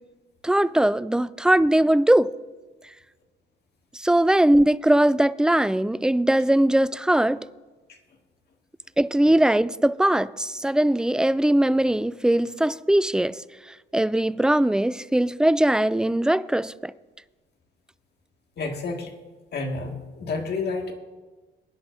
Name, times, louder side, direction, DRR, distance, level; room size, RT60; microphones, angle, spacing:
voice 1, 0.4-2.3 4.0-7.4 9.0-13.4 13.9-16.9, right 1 dB, 5° right, 0.3 m, -20 dB
voice 2, 18.6-19.1 19.5-20.9, left 3 dB, 55° left, 2.1 m, -30 dB
23.0 x 10.5 x 2.7 m
cardioid pair, 90°, 20 cm